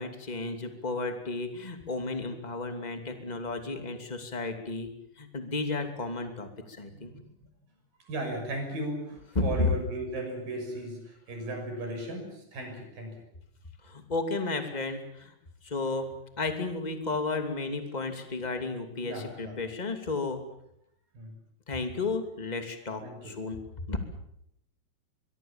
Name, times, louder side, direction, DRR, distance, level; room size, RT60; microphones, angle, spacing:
voice 1, 0.0-4.9 5.2-7.1 9.3-9.7 13.8-15.3 15.6-16.1 16.4-20.4 21.7-24.0, left 3 dB, 15° left, 6 dB, 2.2 m, -33 dB
voice 2, 8.1-13.1 19.0-19.6 21.1-21.3 23.0-23.3, right 1 dB, 75° right, 4 dB, 7.9 m, -36 dB
23.5 x 23.0 x 7.4 m, 0.76 s
omnidirectional pair, 4.0 m